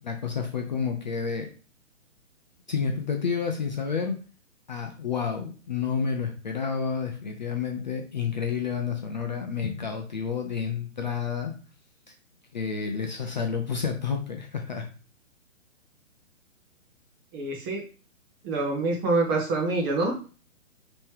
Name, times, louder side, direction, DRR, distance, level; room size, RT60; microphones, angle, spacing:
voice 1, 0.0-1.5 2.7-4.2 4.7-11.5 12.5-14.9, left 6 dB, 35° left, 3 dB, 0.5 m, -30 dB
voice 2, 17.3-17.8 18.4-20.1, right 3 dB, 15° right, 0 dB, 0.8 m, -26 dB
5.3 x 3.0 x 3.2 m, 0.36 s
figure-of-eight pair, 135°, 40 cm